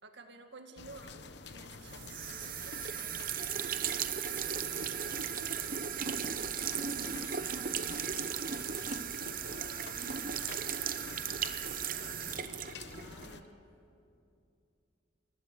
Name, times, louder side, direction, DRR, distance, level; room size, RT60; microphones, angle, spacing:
voice 1, 0.0-3.5 9.6-10.0 13.2-13.6, right 3 dB, 60° right, 5 dB, 2.1 m, -53 dB
sound 1, 0.8-13.4, left 3 dB, 55° left, 1.0 m, -48 dB
sound 2, 1.9-13.3, right 8 dB, 45° right, 0.8 m, -36 dB
voice 2, 3.8-8.7 9.1-12.3 12.8-13.5, equal, 10° right, -5 dB, 3.7 m, -58 dB
29.5 x 21.5 x 7.7 m, 2.7 s
head